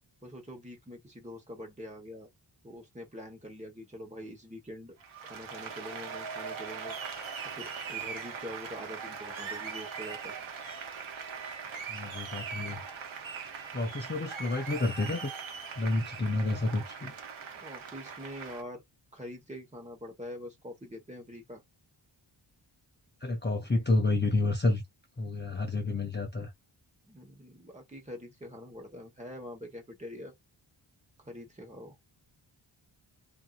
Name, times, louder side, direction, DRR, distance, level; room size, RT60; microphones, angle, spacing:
voice 1, 0.2-2.3 2.6-4.9 5.2-7.2 7.5-10.4 17.6-18.8 19.1-21.6 27.1-30.3 31.2-31.9, equal, 15° right, 1.2 m, -44 dB
Applause, 5.0-18.6, right 6 dB, 75° right, 0.9 m, -40 dB
voice 2, 11.9-12.8 13.7-15.4 15.8-17.1 23.2-24.8 25.2-26.5, left 2 dB, 25° left, 0.6 m, -30 dB
2.7 x 2.5 x 2.4 m
wide cardioid pair, 115°, 47 cm